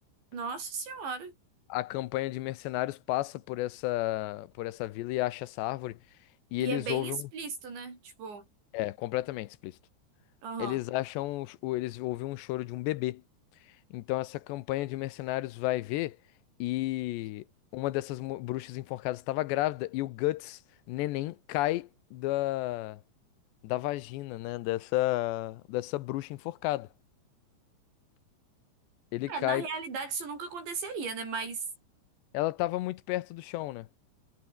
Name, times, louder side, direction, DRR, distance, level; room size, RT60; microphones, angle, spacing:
voice 1, 0.3-1.3 6.6-8.5 10.4-10.8 29.3-31.6, right 5 dB, 85° right, 10.0 m, -36 dB
voice 2, 1.7-6.0 6.5-7.3 8.7-9.8 10.6-13.2 13.9-16.2 16.6-17.4 17.7-20.6 20.9-23.0 23.6-26.9 29.1-29.7 32.3-33.9, left 17 dB, 80° left, 3.1 m, -32 dB
omnidirectional pair, 5.0 m